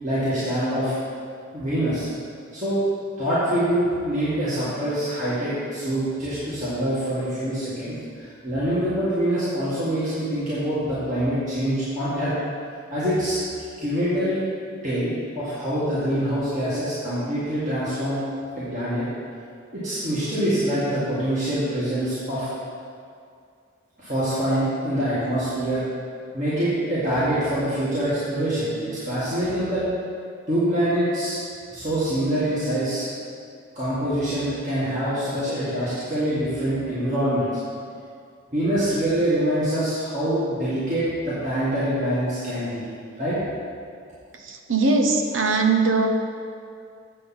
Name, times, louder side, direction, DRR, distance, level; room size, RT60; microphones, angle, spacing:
voice 1, 0.0-0.9 1.5-2.1 2.5-2.8 3.2-12.3 12.9-13.4 13.8-14.4 14.8-18.2 18.5-19.0 19.7-22.5 24.0-25.8 26.3-29.8 30.5-31.4 31.7-33.0 33.7-37.5 38.5-42.9 43.2-43.4, right 1 dB, 40° right, -12 dB, 2.0 m, -25 dB
voice 2, 44.4-46.1, right 3 dB, 80° right, 4 dB, 0.8 m, -20 dB
8.2 x 7.5 x 4.3 m, 2.3 s
head